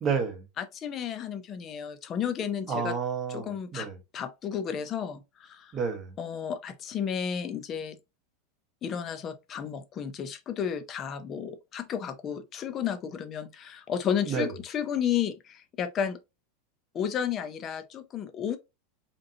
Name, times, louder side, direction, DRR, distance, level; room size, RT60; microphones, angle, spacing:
voice 1, 0.0-0.4 2.7-3.9 5.7-6.1 14.3-14.5, right 6 dB, 20° right, 0.9 m, -30 dB
voice 2, 0.6-2.9 3.3-3.9 4.1-5.7 6.2-8.0 8.8-16.2 16.9-18.6, left 8 dB, 20° left, 0.5 m, -32 dB
5.1 x 3.0 x 2.8 m
supercardioid pair, 175°, 0 cm